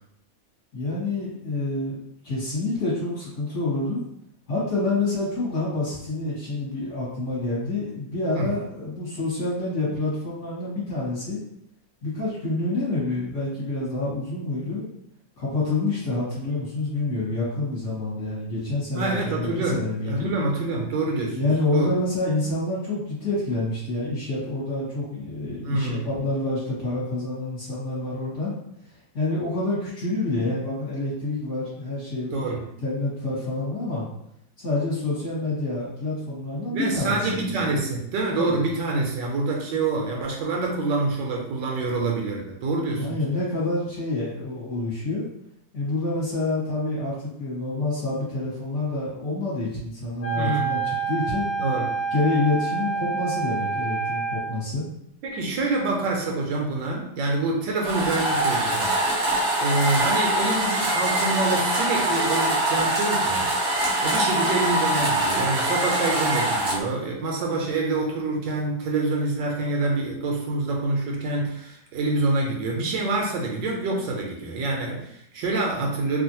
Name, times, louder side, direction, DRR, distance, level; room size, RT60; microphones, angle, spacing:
voice 1, 0.7-2.0 2.2-4.0 4.5-11.4 12.0-14.8 15.4-20.3 21.3-28.5 29.1-32.5 32.8-34.0 34.6-37.4 38.3-38.6 43.0-45.2 45.7-51.5 52.1-54.8, left 2 dB, 45° left, -9 dB, 1.3 m, -27 dB
voice 2, 18.9-21.4 21.7-21.9 25.6-26.1 32.3-32.7 36.7-43.2 50.3-50.7 51.6-51.9 55.2-59.0 59.6-63.5 64.0-76.2, right 2 dB, 75° right, 0 dB, 1.2 m, -26 dB
Wind instrument woodwind instrument, 50.2-54.6, right 5 dB, 80° left, 1.3 m, -28 dB
sound 1, 57.8-66.8, right 1 dB, 55° right, 0.8 m, -23 dB
3.0 x 2.5 x 2.7 m, 0.74 s
omnidirectional pair, 2.1 m